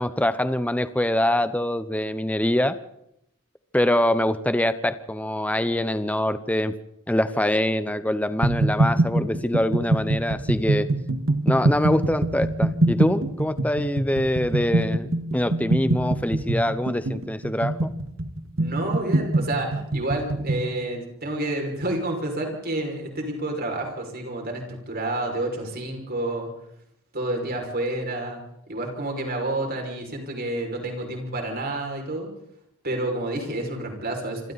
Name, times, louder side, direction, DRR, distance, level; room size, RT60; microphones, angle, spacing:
voice 1, 0.0-2.8 3.7-6.7 7.1-10.9 11.4-17.9, left 1 dB, 5° left, 11 dB, 0.8 m, -24 dB
sound 1, 8.4-20.7, right 2 dB, 65° right, 1.8 m, -23 dB
voice 2, 18.6-26.5 27.1-28.4 28.7-32.3 32.8-34.5, right 1 dB, 45° right, 2 dB, 5.9 m, -29 dB
27.0 x 26.0 x 4.2 m, 0.77 s
head